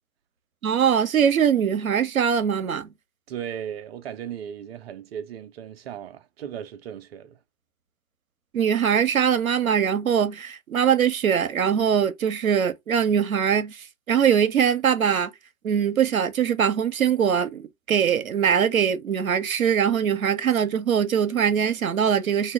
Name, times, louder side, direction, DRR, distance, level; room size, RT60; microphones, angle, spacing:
voice 1, 0.6-2.9 8.5-15.3 15.6-22.5, right 8 dB, 90° right, 0.7 m, -22 dB
voice 2, 3.3-7.4, right 9 dB, 50° right, 0.7 m, -36 dB
2.8 x 2.3 x 3.4 m
hypercardioid pair, 120°, 41 cm